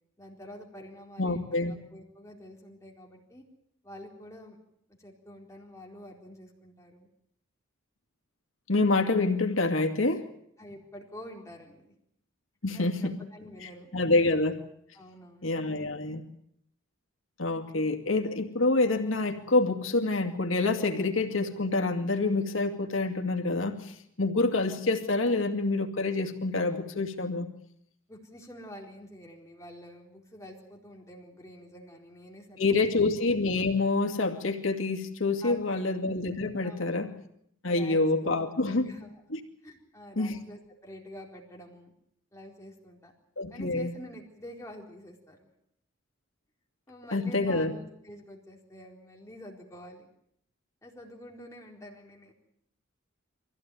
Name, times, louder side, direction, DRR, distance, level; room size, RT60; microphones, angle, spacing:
voice 1, 0.2-3.4 3.8-4.6 5.0-7.1 10.6-11.9 12.7-13.9 14.9-15.5 28.1-33.1 35.4-35.9 36.6-37.1 37.7-38.4 38.7-39.1 39.6-41.9 42.3-43.1 43.5-45.5 46.9-50.1 50.8-52.3, left 1 dB, 15° left, -1 dB, 4.1 m, -47 dB
voice 2, 1.2-1.8 8.7-10.2 12.6-13.1 13.9-14.6 15.4-16.2 17.4-27.5 32.6-37.1 37.6-38.9 39.3-39.4 40.2-40.4 43.4-43.9 47.1-47.7, left 3 dB, 85° left, 4 dB, 2.4 m, -27 dB
25.0 x 16.0 x 9.3 m, 0.74 s
head